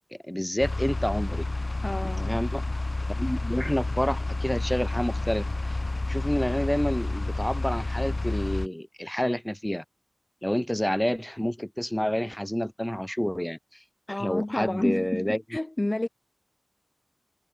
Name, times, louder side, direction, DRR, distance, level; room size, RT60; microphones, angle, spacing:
voice 1, 0.2-1.5 2.0-2.6 3.2-5.8 6.1-9.8 10.4-13.6 14.1-15.4, equal, 10° left, 4.1 m, -28 dB
sound 1, 0.6-8.7, left 2 dB, 50° left, 0.6 m, -30 dB
voice 2, 1.8-2.4 14.1-16.1, left 1 dB, 30° left, 1.5 m, -30 dB
wide cardioid pair, 45°, 0 cm